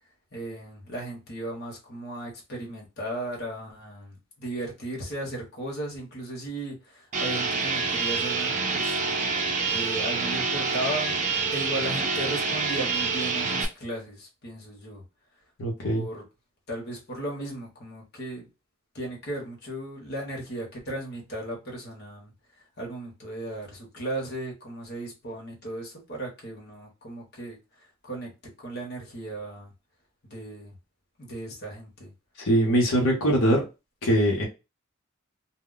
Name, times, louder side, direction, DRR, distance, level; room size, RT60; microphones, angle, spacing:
voice 1, 0.3-9.0 9.7-11.3 11.5-15.0 15.8-16.2 16.7-18.5 18.9-22.3 22.8-27.6 28.1-28.3 28.6-29.7 30.2-30.7 31.2-32.1, right 1 dB, 50° left, 1.0 m, -36 dB
sound 1, 7.1-13.7, right 4 dB, 35° right, 0.5 m, -27 dB
voice 2, 15.6-16.1 32.4-33.6 34.0-34.4, right 1 dB, 80° left, 0.9 m, -22 dB
2.1 x 2.1 x 3.7 m
head